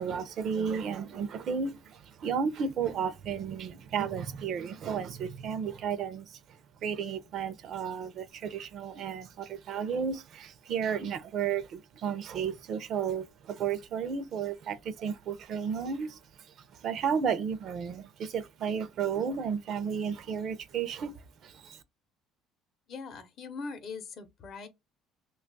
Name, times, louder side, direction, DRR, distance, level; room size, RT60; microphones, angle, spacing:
voice 1, 0.0-21.8, right 7 dB, 45° right, 0.5 m, -33 dB
voice 2, 22.9-24.7, left 4 dB, 45° left, 0.7 m, -41 dB
2.9 x 2.3 x 3.8 m
cardioid pair, 150°, 0 cm